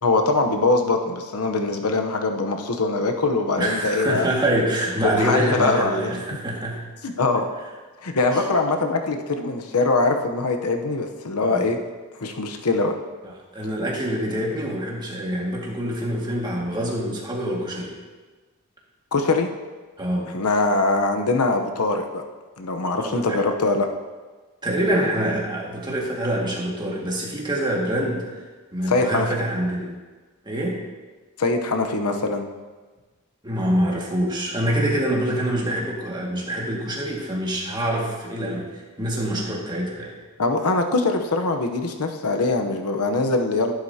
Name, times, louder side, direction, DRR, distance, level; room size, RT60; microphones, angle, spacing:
voice 1, 0.0-4.3 5.2-6.2 7.0-7.5 8.0-11.8 12.2-13.0 19.1-19.5 20.3-22.2 22.6-23.9 28.9-29.3 31.4-32.4 40.4-43.7, left 3 dB, 85° left, 5 dB, 0.9 m, -22 dB
voice 2, 3.6-6.8 8.3-8.4 11.4-11.7 13.5-18.0 20.0-20.3 22.8-23.4 24.6-28.2 28.7-29.9 30.4-30.8 33.4-40.2, right 1 dB, 20° right, -3 dB, 2.0 m, -25 dB
11.5 x 11.0 x 2.8 m, 1.3 s
head